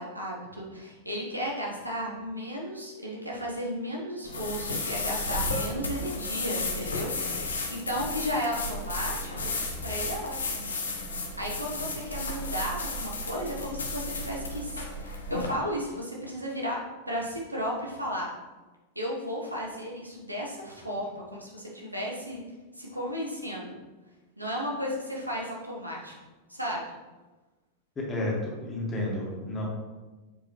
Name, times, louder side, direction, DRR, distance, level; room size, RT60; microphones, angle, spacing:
voice 1, 0.0-7.1 7.4-9.3 9.8-10.7 11.4-16.8 17.1-18.3 18.9-22.4 22.7-23.8 24.4-26.1 26.5-26.8, equal, 85° right, -3 dB, 1.3 m, -34 dB
sound 1, 4.2-15.5, left 2 dB, 70° left, 0.9 m, -33 dB
voice 2, 28.0-29.7, left 1 dB, 20° left, -3 dB, 1.9 m, -31 dB
7.5 x 4.7 x 3.2 m, 1.2 s
figure-of-eight pair, 90°, 0 cm